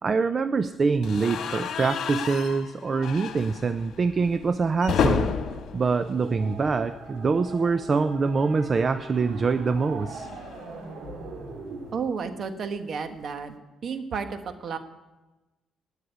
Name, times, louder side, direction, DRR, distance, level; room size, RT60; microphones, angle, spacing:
voice 1, 0.0-5.3 5.7-10.3, right 4 dB, 40° right, 11 dB, 0.6 m, -25 dB
sound 1, 1.0-7.1 7.4-7.6 7.8-7.9 9.2-11.5, left 7 dB, 75° left, 1.6 m, -32 dB
sound 2, 5.4-11.9, right 4 dB, 85° right, 3.9 m, -42 dB
voice 2, 11.9-13.5 13.8-14.8, right 5 dB, 55° right, 8 dB, 1.6 m, -32 dB
19.0 x 6.6 x 9.9 m, 1.1 s
cardioid pair, 90°, 0 cm